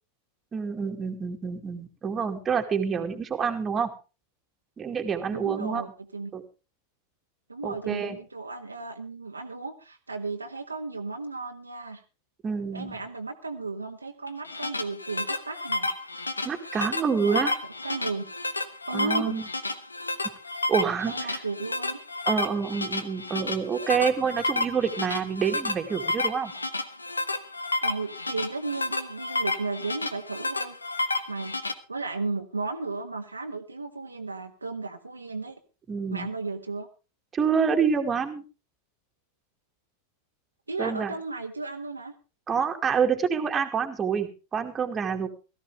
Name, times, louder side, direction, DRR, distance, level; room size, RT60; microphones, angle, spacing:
voice 1, 0.5-3.9 4.8-5.8 6.3-6.4 7.6-8.2 12.4-12.9 16.4-17.5 18.9-19.4 20.7-21.3 22.3-26.5 35.9-36.3 37.3-38.4 40.8-41.1 42.5-45.3, right 6 dB, 20° right, 4 dB, 2.2 m, -27 dB
voice 2, 5.3-6.3 7.5-12.0 12.7-15.9 17.2-18.2 18.9-19.4 21.1-22.0 27.8-30.8 31.3-31.5 31.9-35.6 36.1-36.9 40.7-42.1, right 3 dB, 80° right, 4 dB, 1.6 m, -34 dB
sound 1, 14.3-31.7, left 2 dB, 80° left, 1.1 m, -31 dB
17.5 x 14.0 x 3.4 m, 0.32 s
figure-of-eight pair, 90°, 0 cm